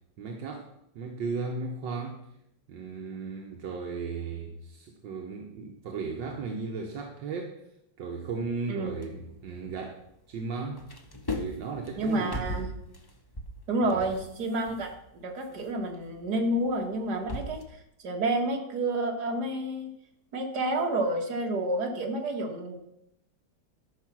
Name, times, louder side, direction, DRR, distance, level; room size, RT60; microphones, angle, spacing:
voice 1, 0.2-0.7 0.9-2.3 2.7-7.6 8.0-10.8 11.4-12.5 13.8-14.2, right 4 dB, 75° right, 2 dB, 1.7 m, -36 dB
sound 1, 8.8-10.4 10.6-17.6, left 1 dB, 30° left, 0.4 m, -40 dB
voice 2, 12.0-12.7 13.7-14.9 15.2-17.6 18.0-19.9 20.3-22.8, right 1 dB, 60° right, 3 dB, 2.2 m, -29 dB
13.0 x 5.8 x 6.1 m, 0.79 s
omnidirectional pair, 2.1 m